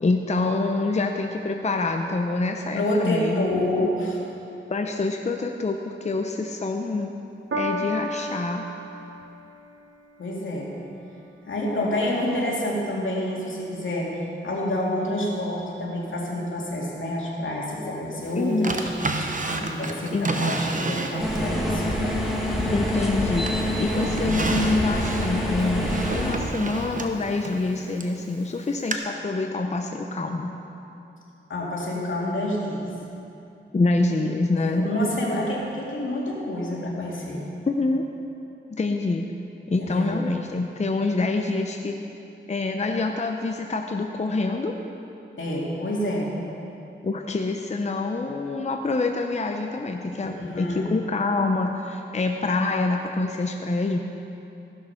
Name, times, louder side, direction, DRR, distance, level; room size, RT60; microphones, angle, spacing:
voice 1, 0.0-3.4 3.8-3.9 4.7-7.1 7.5-8.6 18.4-18.7 20.1-20.3 22.7-23.5 23.8-25.9 26.1-30.5 33.7-34.9 37.7-38.0 38.7-39.3 39.7-42.0 42.5-44.7 47.0-54.0, left 3 dB, 35° left, 3 dB, 0.6 m, -26 dB
voice 2, 2.7-4.2 10.2-10.7 11.5-14.1 14.4-18.9 19.2-22.0 31.5-32.8 34.6-37.4 39.8-40.2 45.4-46.3 50.2-50.9, left 1 dB, 75° left, -4 dB, 2.3 m, -28 dB
Piano, 7.5-14.1 14.9-15.0, equal, 70° right, 1.1 m, -36 dB
Drawer open or close, 18.6-21.5 22.0-23.1 23.5-28.2 28.9-29.0, right 2 dB, 40° right, 0.9 m, -30 dB
sound 1, 21.2-26.3, left 1 dB, ahead, 1.9 m, -26 dB
14.5 x 6.4 x 5.8 m, 2.8 s
wide cardioid pair, 70°, 20 cm